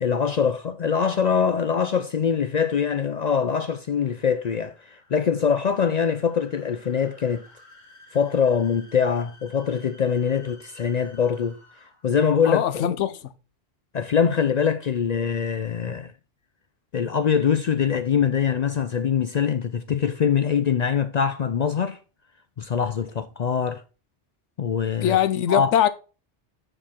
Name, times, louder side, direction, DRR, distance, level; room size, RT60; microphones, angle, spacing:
voice 1, 0.0-7.4 8.1-11.6 12.0-12.9 13.9-16.1 16.9-22.0 22.6-23.8 24.6-25.2 25.5-25.7, left 7 dB, 60° left, 0.4 m, -23 dB
sound 1, 1.9-12.2, left 2 dB, 40° left, 1.7 m, -54 dB
voice 2, 12.4-13.2 25.0-25.9, left 10 dB, 85° left, 1.0 m, -21 dB
8.7 x 4.9 x 4.3 m
omnidirectional pair, 1.2 m